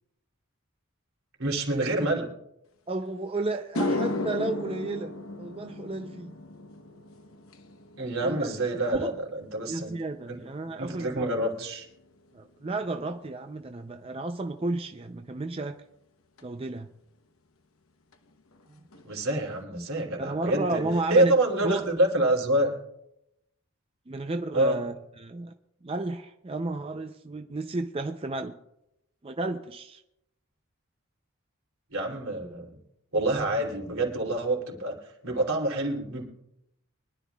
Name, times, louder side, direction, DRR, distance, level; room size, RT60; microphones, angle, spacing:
voice 1, 1.4-2.3 8.0-9.9 10.3-10.4 10.8-11.9 19.0-20.8 21.1-22.7 24.5-24.8 31.9-32.8 33.1-36.3, right 1 dB, 80° right, 0 dB, 3.1 m, -27 dB
voice 2, 2.9-6.3 8.2-8.5 8.9-9.1 9.7-11.3 12.3-15.8 16.4-16.9 18.7-18.8 20.2-21.3 21.6-21.9 24.1-25.5 25.8-28.5 29.2-30.0, right 2 dB, 25° right, 6 dB, 0.5 m, -32 dB
sound 1, 3.0-3.1 3.6-12.1 12.4-12.8 16.4-16.5 18.1-18.2 18.5-18.7 18.9-19.5, left 2 dB, 80° left, 0.9 m, -36 dB
24.0 x 11.5 x 2.3 m, 0.83 s
head